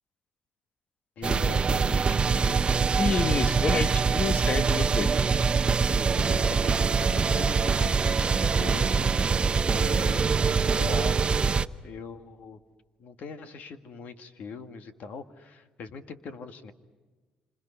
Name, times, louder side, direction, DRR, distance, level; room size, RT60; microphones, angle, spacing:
voice 1, 1.2-2.6 6.1-9.2 9.6-10.2 10.7-11.1 11.8-12.6 13.0-16.7, left 5 dB, 65° left, 8 dB, 2.0 m, -40 dB
sound 1, 1.2-11.7, right 5 dB, 35° right, 0.8 m, -24 dB
voice 2, 3.0-5.1, left 5 dB, 40° left, 11 dB, 1.3 m, -29 dB
28.0 x 26.5 x 5.8 m, 1.3 s
cardioid pair, 100°, 3 cm